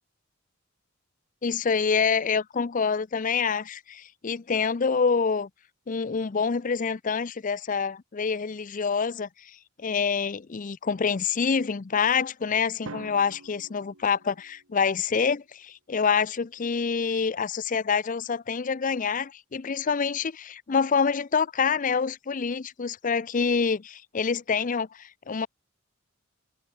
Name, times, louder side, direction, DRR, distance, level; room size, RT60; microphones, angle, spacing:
voice 1, 1.4-5.5 5.9-9.5 9.8-25.5, left 5 dB, 40° left, 0.5 m, -26 dB
Drum, 12.9-14.9, right 2 dB, 80° right, 2.5 m, -45 dB
head